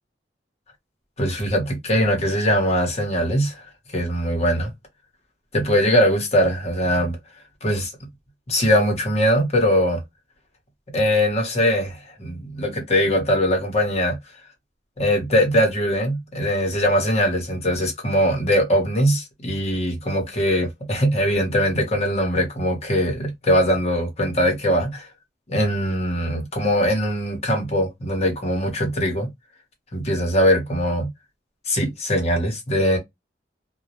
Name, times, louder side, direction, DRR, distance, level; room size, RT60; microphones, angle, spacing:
voice 1, 1.2-3.6 3.9-4.7 5.5-7.2 7.6-7.9 8.5-10.0 10.9-14.2 15.0-25.1 25.5-29.3 29.9-31.1 31.7-33.0, equal, 40° left, 0.9 m, -21 dB
2.2 x 2.0 x 2.8 m
head